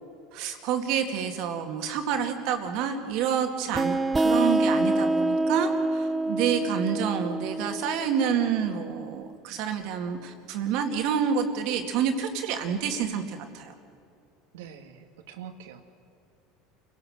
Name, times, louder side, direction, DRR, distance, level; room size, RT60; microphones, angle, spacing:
voice 1, 0.3-13.7, right 7 dB, 65° right, 5 dB, 2.2 m, -28 dB
sound 1, 3.7-9.1, right 2 dB, 15° right, 0.6 m, -26 dB
voice 2, 14.5-15.8, right 8 dB, 85° right, 7 dB, 1.8 m, -44 dB
29.0 x 18.0 x 6.6 m, 2.6 s
supercardioid pair, 110°, 0 cm